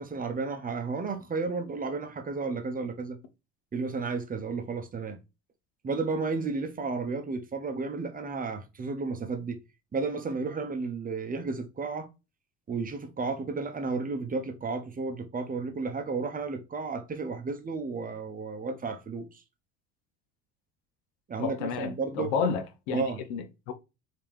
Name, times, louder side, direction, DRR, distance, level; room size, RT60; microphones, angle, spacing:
voice 1, 0.0-3.2 3.7-5.2 5.8-9.6 9.9-12.1 12.7-19.4 21.3-22.3 22.9-23.2, right 4 dB, 25° right, 0.7 m, -32 dB
voice 2, 21.4-23.0 23.3-23.7, left 6 dB, 80° left, 0.7 m, -31 dB
3.4 x 2.9 x 3.1 m
supercardioid pair, 85°, 35 cm